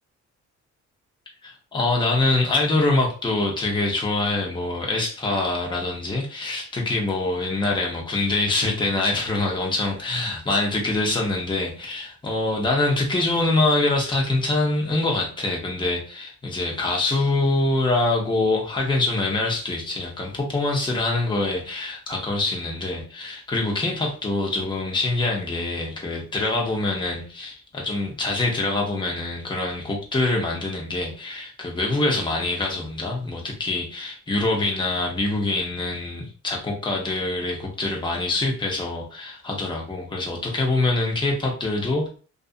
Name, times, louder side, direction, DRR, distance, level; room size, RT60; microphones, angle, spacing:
voice 1, 1.4-42.1, left 2 dB, 15° left, -1 dB, 0.8 m, -24 dB
2.5 x 2.5 x 2.4 m, 0.38 s
cardioid pair, 90°, 30 cm